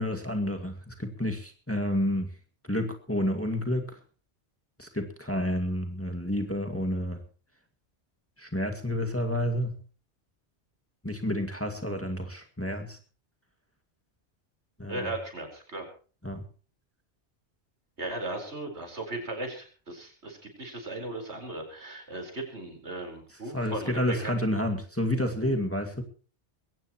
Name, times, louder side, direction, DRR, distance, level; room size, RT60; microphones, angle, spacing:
voice 1, 0.0-2.3 2.7-4.0 4.8-7.2 8.4-9.8 11.0-13.0 14.8-15.1 16.2-16.4 23.5-26.0, left 1 dB, 10° left, 3 dB, 2.1 m, -30 dB
voice 2, 14.9-15.9 18.0-24.3, right 2 dB, 75° right, 4 dB, 4.9 m, -37 dB
21.5 x 17.5 x 3.0 m, 0.38 s
omnidirectional pair, 1.1 m